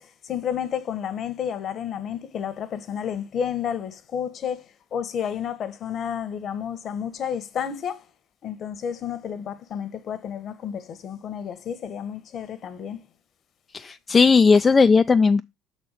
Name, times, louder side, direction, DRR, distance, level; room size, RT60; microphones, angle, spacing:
voice 1, 0.0-4.6 4.9-8.0 8.4-13.1, left 8 dB, 55° left, 1.1 m, -31 dB
voice 2, 13.7-15.4, left 4 dB, 30° left, 0.3 m, -17 dB
6.1 x 4.3 x 4.8 m
supercardioid pair, 75°, 0 cm